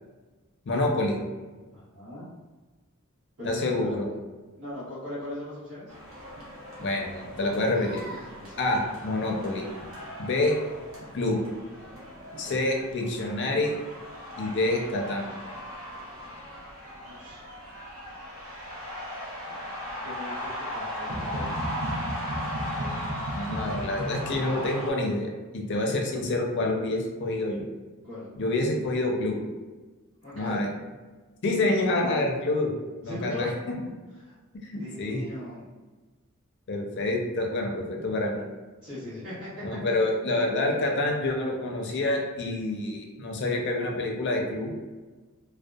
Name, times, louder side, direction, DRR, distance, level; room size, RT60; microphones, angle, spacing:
voice 1, 0.7-1.2 3.4-4.1 6.8-8.0 8.6-9.7 10.2-10.5 11.1-11.4 12.4-13.7 14.4-15.3 23.3-27.7 28.4-29.4 30.3-30.7 31.4-32.7 33.0-33.8 34.6-35.2 36.7-38.5 39.6-44.7, left 2 dB, 55° left, 1 dB, 0.4 m, -27 dB
voice 2, 1.7-2.3 3.4-4.0 4.5-5.9 8.4-8.6 12.4-12.6 17.0-17.5 19.5-21.6 28.0-28.3 30.2-30.6 33.0-33.5 34.2-34.3 34.7-35.7 38.8-39.5 39.9-40.0, left 2 dB, 80° right, -13 dB, 1.2 m, -39 dB
sound 1, 5.9-24.9, equal, 60° right, 0.7 m, -36 dB
2.6 x 2.1 x 2.3 m, 1.3 s
head